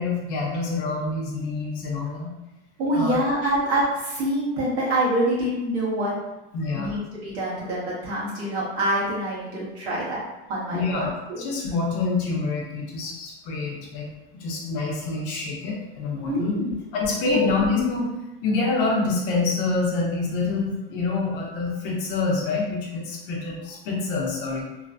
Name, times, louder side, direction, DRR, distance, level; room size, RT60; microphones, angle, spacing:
voice 1, 0.0-2.3 2.9-3.1 6.5-6.9 10.7-11.1 11.4-16.5 16.9-18.1 18.4-24.7, left 3 dB, 55° left, -2 dB, 0.8 m, -26 dB
voice 2, 2.8-6.1 6.7-10.2 10.5-11.5 16.2-16.7 17.2-17.6, right 1 dB, 70° right, -6 dB, 1.4 m, -26 dB
3.1 x 2.2 x 2.5 m, 0.99 s
supercardioid pair, 170°, 32 cm